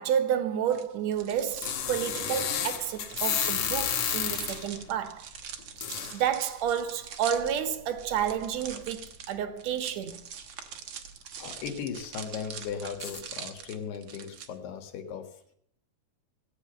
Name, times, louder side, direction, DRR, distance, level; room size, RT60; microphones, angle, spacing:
voice 1, 0.0-5.3 6.1-10.2, right 9 dB, 70° right, 1.7 m, -30 dB
sound 1, 0.7-14.5, right 7 dB, 90° right, 1.2 m, -44 dB
sound 2, 1.5-4.8 5.8-6.2 7.5-7.6 8.2-8.3 8.7-8.8 13.0-13.2, left 8 dB, 60° left, 2.5 m, -31 dB
voice 2, 11.4-15.3, left 7 dB, 90° left, 3.6 m, -37 dB
16.0 x 8.7 x 6.6 m
omnidirectional pair, 4.4 m